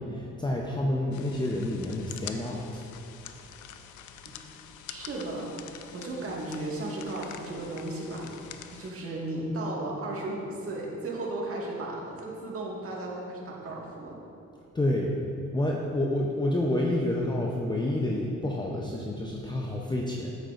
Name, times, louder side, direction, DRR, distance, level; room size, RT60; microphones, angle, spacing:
voice 1, 0.0-2.8 14.7-15.1 15.5-20.3, left 1 dB, 15° left, -2 dB, 0.6 m, -29 dB
sound 1, 1.1-8.9, left 9 dB, 75° left, 0.5 m, -46 dB
voice 2, 4.9-8.3 8.7-14.2, right 2 dB, 50° right, -3 dB, 1.8 m, -35 dB
8.7 x 8.0 x 2.5 m, 2.7 s
cardioid pair, 90°, 30 cm